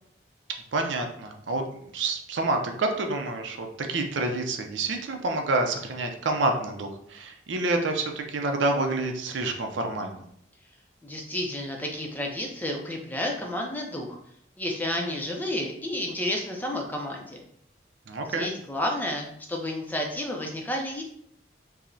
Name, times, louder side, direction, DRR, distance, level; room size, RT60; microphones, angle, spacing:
voice 1, 0.7-1.6 1.9-10.2 18.1-18.5, right 2 dB, 80° right, 4 dB, 0.5 m, -28 dB
voice 2, 11.0-14.2 14.6-17.4 18.3-21.0, left 1 dB, 10° left, 1 dB, 0.5 m, -31 dB
4.6 x 2.1 x 2.6 m, 0.69 s
head